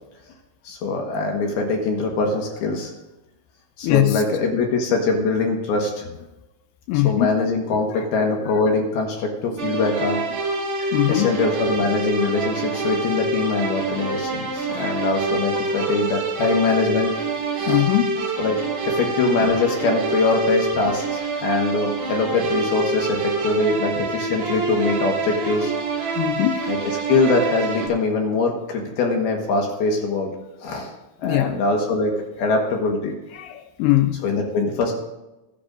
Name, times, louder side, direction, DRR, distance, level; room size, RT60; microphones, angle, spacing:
voice 1, 0.6-2.9 3.8-5.9 6.9-10.2 11.1-17.1 17.6-17.8 18.4-18.6 18.8-25.7 26.7-26.8 27.1-30.3 30.6-30.9 31.2-33.1 34.2-34.9, left 3 dB, 65° left, 2 dB, 2.9 m, -22 dB
voice 2, 3.8-4.2 6.9-7.4 7.9-8.0 10.8-11.3 14.7-15.0 15.7-15.9 17.7-18.2 26.2-26.7 31.2-31.6 33.3-34.2, left 15 dB, 90° left, 8 dB, 2.3 m, -21 dB
sound 1, 9.6-27.9, right 3 dB, 45° right, 1.5 m, -26 dB
21.0 x 11.0 x 2.5 m, 0.99 s
omnidirectional pair, 5.4 m